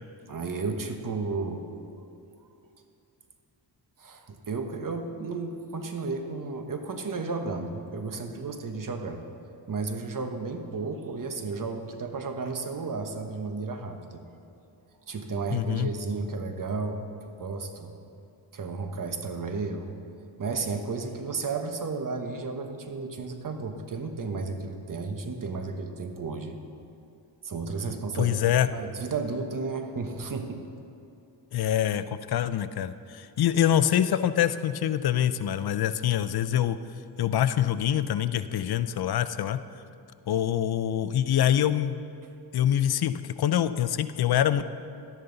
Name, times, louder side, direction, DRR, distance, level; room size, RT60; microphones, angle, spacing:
voice 1, 0.3-1.6 2.0-2.1 4.0-9.2 9.7-14.3 15.1-17.9 18.5-19.9 20.4-26.6 27.4-30.7, right 4 dB, 45° right, 5 dB, 1.2 m, -33 dB
voice 2, 15.5-15.9 28.2-28.7 31.5-36.8 37.2-39.6 40.3-42.0 42.5-44.6, left 10 dB, 55° left, 13 dB, 0.6 m, -25 dB
12.5 x 10.5 x 4.0 m, 2.6 s
cardioid pair, 75°, 45 cm